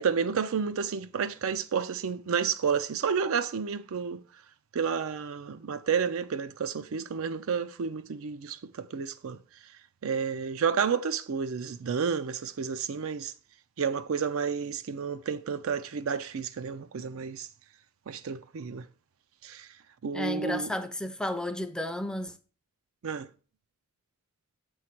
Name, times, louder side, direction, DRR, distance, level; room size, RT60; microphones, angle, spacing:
voice 1, 0.0-4.2 4.7-9.4 10.0-13.3 13.8-17.5 18.1-18.9 19.4-19.7 20.0-20.7 23.0-23.3, right 6 dB, 65° right, 0.5 m, -30 dB
voice 2, 20.1-22.3, left 1 dB, 5° left, 0.5 m, -32 dB
7.7 x 3.2 x 5.8 m
head